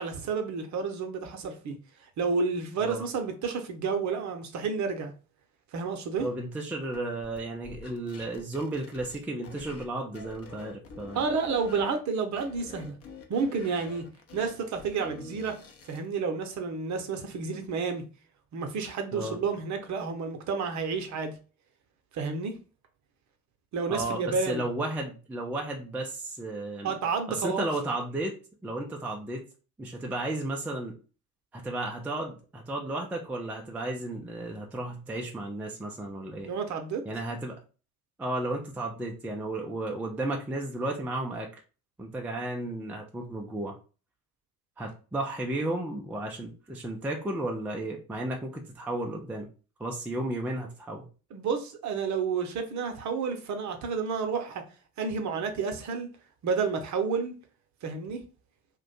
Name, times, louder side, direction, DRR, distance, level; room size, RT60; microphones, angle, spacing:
voice 1, 0.0-1.8 2.2-5.1 5.7-6.3 11.1-12.9 13.3-14.1 14.3-15.6 15.9-18.0 18.5-21.4 22.1-22.6 23.7-24.6 26.8-27.7 36.5-37.0 51.3-54.6 55.0-56.1 56.4-57.3 57.8-58.2, right 5 dB, 40° right, 0.7 m, -30 dB
voice 2, 6.2-11.2 19.1-19.4 23.9-26.9 27.3-28.3 28.6-29.4 29.8-30.9 31.5-36.5 37.1-37.6 38.2-41.5 42.0-43.7 44.8-49.5 49.8-51.1, right 2 dB, 5° right, 0.4 m, -33 dB
sound 1, 6.9-9.9 10.1-12.0 12.3-16.1, left 4 dB, 35° left, 0.7 m, -47 dB
2.5 x 2.2 x 4.0 m
figure-of-eight pair, 50°, 44 cm